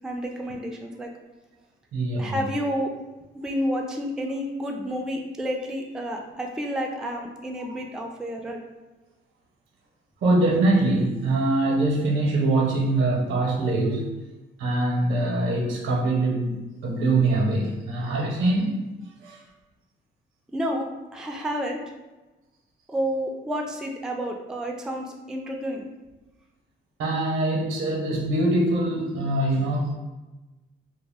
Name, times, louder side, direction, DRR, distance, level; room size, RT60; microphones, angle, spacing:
voice 1, 0.0-1.1 2.2-2.9 3.4-8.6 20.5-20.8 21.1-21.8 22.9-25.9, equal, 5° right, 1 dB, 0.3 m, -30 dB
voice 2, 1.9-2.4 10.2-14.1 14.6-18.8 19.2-19.4 27.0-29.9, right 2 dB, 80° right, 0 dB, 0.7 m, -23 dB
2.3 x 2.1 x 3.4 m, 1.1 s
cardioid pair, 90°, 20 cm